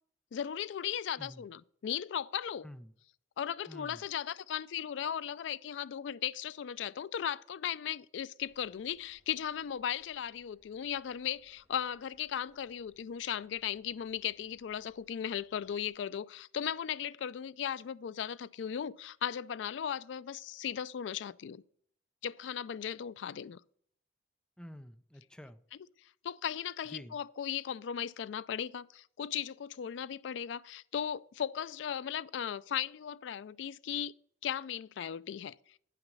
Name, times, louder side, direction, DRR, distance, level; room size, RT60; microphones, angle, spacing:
voice 1, 0.3-2.7 3.4-21.6 22.2-23.6 26.2-34.1 34.4-35.6, left 9 dB, 75° left, 0.3 m, -37 dB
voice 2, 3.7-4.0 24.6-25.6 26.9-27.2, equal, 5° left, 0.5 m, -49 dB
Subway metro underground, 8.4-15.9, equal, 15° right, 2.9 m, -72 dB
9.2 x 5.8 x 5.3 m
head